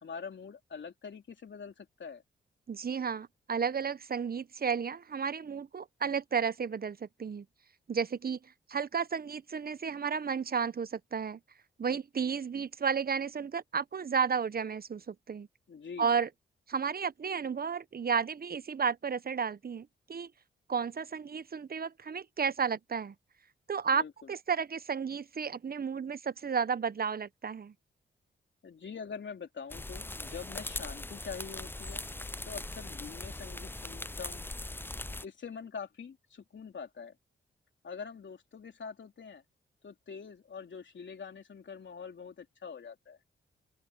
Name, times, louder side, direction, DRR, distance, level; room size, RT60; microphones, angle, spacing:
voice 1, 0.0-2.2 15.7-16.1 23.9-24.3 28.6-32.0 32.4-34.5 35.2-37.2 37.8-39.4 39.8-43.2, left 6 dB, 60° left, 3.5 m, -44 dB
voice 2, 2.7-7.4 7.9-11.4 11.8-15.5 16.0-16.3 16.7-20.3 20.7-23.1 23.7-27.7, right 6 dB, 45° right, 1.0 m, -33 dB
sound 1, 29.7-35.2, left 2 dB, 10° left, 0.5 m, -40 dB
open air
supercardioid pair, 50°, 21 cm